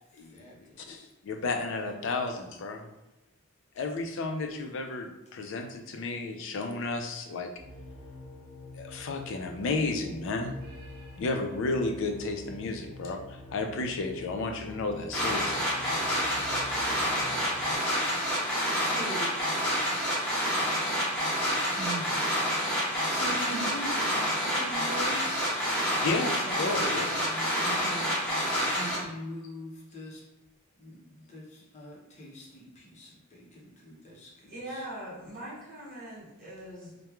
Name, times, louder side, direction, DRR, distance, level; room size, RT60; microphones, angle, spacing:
voice 1, 0.2-1.1 18.7-19.3 21.8-22.4 22.7-25.6 26.3-28.2 28.8-30.2 30.8-34.8, equal, 35° left, -3 dB, 0.7 m, -42 dB
voice 2, 0.9-2.9 3.8-7.5 8.8-10.6 11.2-15.7 26.0-27.1, left 3 dB, 60° left, 5 dB, 0.4 m, -32 dB
sound 1, 7.6-17.8, left 1 dB, 80° right, 0.8 m, -46 dB
sound 2, 15.1-29.0, equal, 5° left, 1.0 m, -28 dB
voice 3, 34.5-37.0, right 1 dB, 45° right, -7 dB, 1.0 m, -41 dB
2.9 x 2.2 x 2.3 m, 0.97 s
head